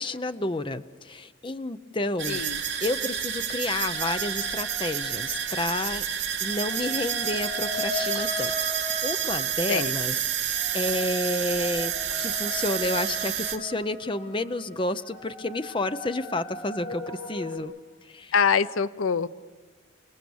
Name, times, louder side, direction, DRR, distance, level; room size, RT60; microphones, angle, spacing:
voice 1, 0.0-2.4 2.8-6.0 6.4-11.9 12.2-17.7 18.1-18.3, left 2 dB, 25° left, 11 dB, 0.6 m, -30 dB
sound 1, 2.2-13.6, right 9 dB, 60° right, 2.6 m, -29 dB
voice 2, 2.3-2.6 9.7-9.9 18.3-19.3, left 6 dB, 85° left, 15 dB, 0.7 m, -24 dB
sound 2, 3.9-5.5 6.5-17.6, left 1 dB, 45° left, 4.0 m, -38 dB
30.0 x 18.5 x 7.0 m, 1.4 s
head